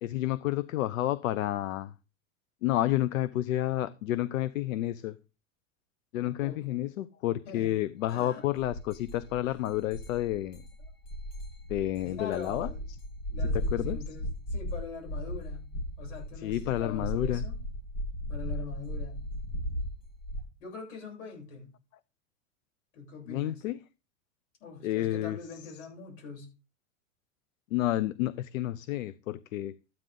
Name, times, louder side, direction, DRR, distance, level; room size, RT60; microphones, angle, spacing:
voice 1, 0.0-1.9 2.6-5.2 6.1-10.6 11.7-12.7 13.5-14.0 16.4-17.5 23.3-23.8 24.8-25.4 27.7-29.7, left 14 dB, 85° left, 0.8 m, -30 dB
voice 2, 6.2-6.8 7.4-7.7 8.1-8.4 9.4-9.6 12.0-12.8 13.3-15.6 16.0-17.6 18.3-19.2 20.6-21.7 22.9-23.6 24.6-26.5, left 5 dB, 65° left, 7.9 m, -43 dB
sound 1, 8.1-8.2 8.6-20.4, equal, 45° left, 7.4 m, -36 dB
13.5 x 9.8 x 3.8 m
supercardioid pair, 170°, 39 cm